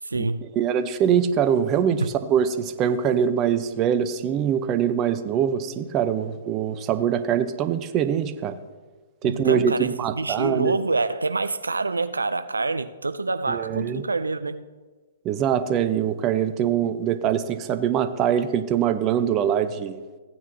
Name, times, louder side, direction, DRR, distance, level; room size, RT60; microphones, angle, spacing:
voice 1, 0.0-0.5 9.2-14.7, right 3 dB, 85° right, 0.3 m, -26 dB
voice 2, 0.6-2.0 2.3-8.6 9.2-10.8 13.5-14.0 15.2-20.0, right 8 dB, 30° right, 0.6 m, -23 dB
15.5 x 9.3 x 2.7 m
figure-of-eight pair, 120°, 0 cm